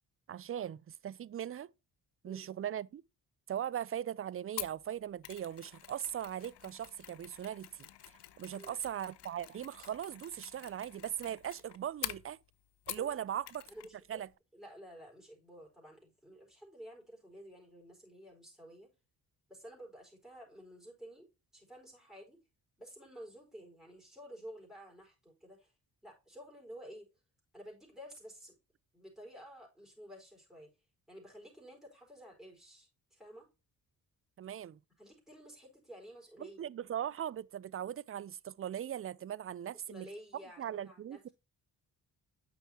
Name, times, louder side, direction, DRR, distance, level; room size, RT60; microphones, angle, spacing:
voice 1, 0.3-1.7 2.2-3.0 3.5-7.9 8.4-12.4 12.9-13.6 14.1-14.3 34.4-34.8 36.4-40.1 40.6-41.3, right 10 dB, 35° right, 0.4 m, -39 dB
Mechanisms, 4.6-13.2 13.5-13.9 14.2-14.3, left 12 dB, 65° left, 0.8 m, -47 dB
voice 2, 13.0-13.3 13.7-14.2 14.5-18.9 19.5-21.3 21.5-22.4 22.8-25.7 26.0-27.1 27.5-28.6 28.9-30.7 31.1-33.5 35.0-36.7 39.9-41.3, equal, ahead, 4.6 m, -52 dB
9.1 x 6.2 x 2.8 m
supercardioid pair, 60°, 44 cm